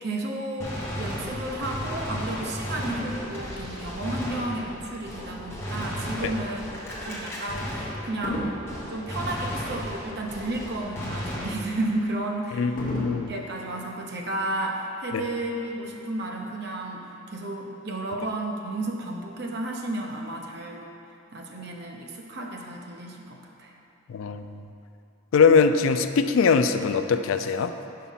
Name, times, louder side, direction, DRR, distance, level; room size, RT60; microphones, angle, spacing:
voice 1, 0.0-12.9 13.3-20.8 21.3-23.8, right 1 dB, 50° right, 1 dB, 0.7 m, -32 dB
Gunshot gunfire, 0.6-8.4 8.7-12.0, equal, 10° left, 0.9 m, -34 dB
Fireworks, 2.9-5.5 6.1-6.3 8.2-10.7 11.1-11.2 12.8-14.6 15.4-15.5, equal, 40° left, 0.8 m, -38 dB
voice 2, 12.6-13.3 15.1-15.2 24.1-24.6 25.3-27.7, left 5 dB, 75° left, 9 dB, 0.3 m, -21 dB
5.6 x 5.0 x 5.5 m, 2.6 s
head